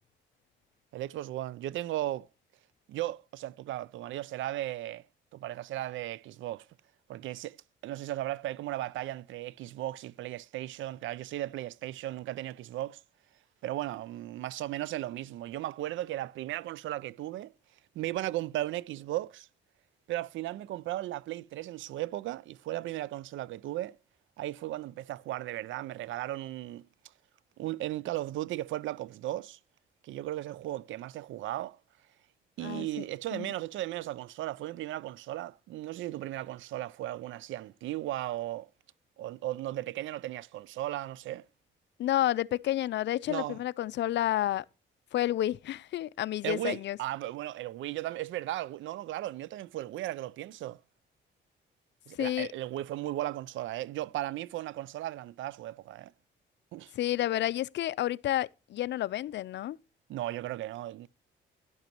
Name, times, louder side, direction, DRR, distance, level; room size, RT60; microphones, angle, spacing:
voice 1, 0.9-2.3 2.9-5.0 5.3-6.7 7.1-7.6 7.8-13.0 13.6-17.5 18.0-19.5 20.1-24.0 24.4-26.9 27.6-29.6 30.0-31.8 32.6-38.7 39.2-41.4 43.3-43.6 46.4-50.8 52.1-56.1 56.7-56.9 60.1-61.1, right 15 dB, 75° right, 0.5 m, -36 dB
voice 2, 42.0-44.6 45.1-47.0 52.2-52.5 57.0-59.8, left 13 dB, 65° left, 0.5 m, -30 dB
12.0 x 10.5 x 2.9 m
cardioid pair, 90°, 20 cm